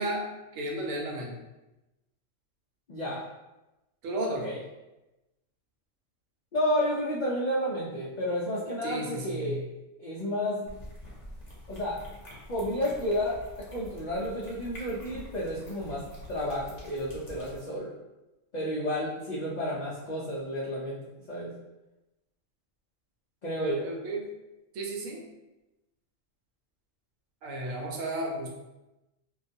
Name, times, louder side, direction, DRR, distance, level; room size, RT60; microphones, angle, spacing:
voice 1, 0.0-1.3 4.0-4.5 8.8-9.6 23.6-24.3 24.7-25.2 27.4-28.5, right 1 dB, 85° right, 0 dB, 1.0 m, -33 dB
voice 2, 2.9-3.3 4.3-4.6 6.5-9.6 10.0-10.7 11.7-12.0 12.5-17.9 18.5-21.5 23.4-23.9, equal, 90° left, -7 dB, 0.3 m, -31 dB
sound 1, 10.7-17.6, equal, 40° left, 0.6 m, -46 dB
2.3 x 2.3 x 2.6 m, 1.0 s
omnidirectional pair, 1.3 m